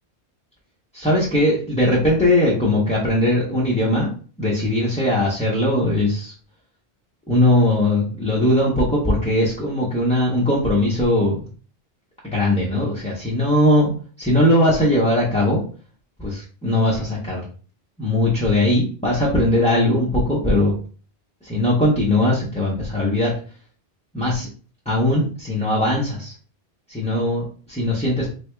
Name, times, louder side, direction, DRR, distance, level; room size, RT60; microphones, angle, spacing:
voice 1, 0.9-4.1 4.4-6.3 7.3-11.4 12.3-13.9 14.2-15.6 16.2-17.4 18.0-20.7 21.4-23.3 24.1-24.5 24.9-26.3 26.9-28.3, left 1 dB, 5° left, -6 dB, 0.6 m, -19 dB
3.5 x 3.2 x 2.2 m, 0.39 s
omnidirectional pair, 1.1 m